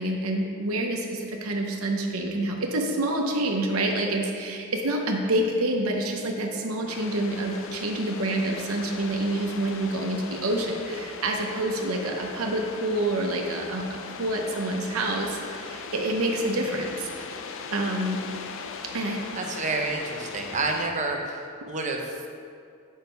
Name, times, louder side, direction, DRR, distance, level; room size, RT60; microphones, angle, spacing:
voice 1, 0.0-17.3 17.7-18.2 18.9-19.2, right 1 dB, 80° right, 2 dB, 0.8 m, -27 dB
sound 1, 6.9-20.9, left 5 dB, 65° left, 0.5 m, -39 dB
voice 2, 19.4-22.3, right 3 dB, 35° right, 2 dB, 0.8 m, -29 dB
7.1 x 5.5 x 4.5 m, 2.3 s
head